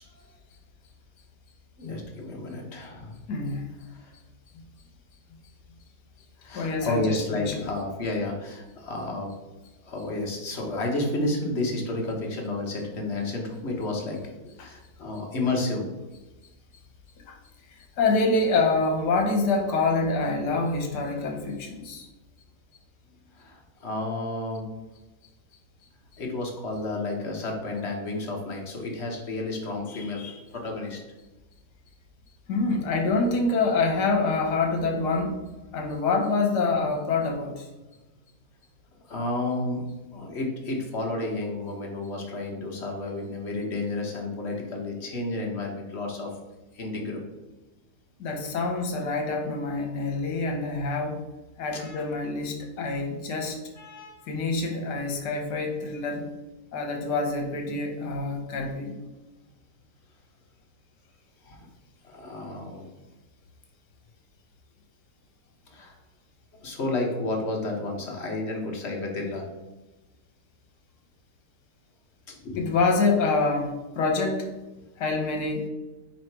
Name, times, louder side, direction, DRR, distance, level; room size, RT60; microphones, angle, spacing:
voice 1, 1.8-3.1 3.9-4.1 6.4-9.3 9.8-14.2 14.6-15.9 23.4-24.7 26.2-31.0 39.1-39.8 40.1-46.3 46.7-47.2 51.7-52.0 53.8-54.2 61.4-61.6 62.0-62.9 65.7-65.9 66.6-69.5 72.4-72.7, left 2 dB, 45° left, 1 dB, 1.2 m, -31 dB
voice 2, 3.3-3.7 6.5-7.7 14.6-14.7 17.3-17.4 18.0-22.1 32.5-35.4 35.7-37.7 48.2-51.2 51.6-53.6 54.3-56.3 56.7-59.0 72.6-74.5 75.0-75.7, left 3 dB, 75° left, 3 dB, 1.6 m, -26 dB
4.9 x 4.2 x 4.5 m, 1.1 s
omnidirectional pair, 1.8 m